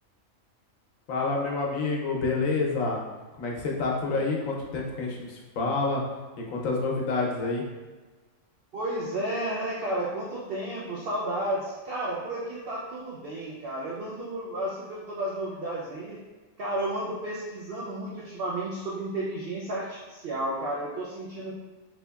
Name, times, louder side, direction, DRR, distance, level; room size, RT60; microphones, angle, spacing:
voice 1, 1.1-3.0 3.4-6.0 6.4-7.6, left 3 dB, 85° left, -1 dB, 1.1 m, -28 dB
voice 2, 8.7-16.2 16.6-21.5, right 1 dB, 60° right, -4 dB, 0.6 m, -32 dB
4.1 x 2.8 x 2.2 m, 1.3 s
omnidirectional pair, 1.4 m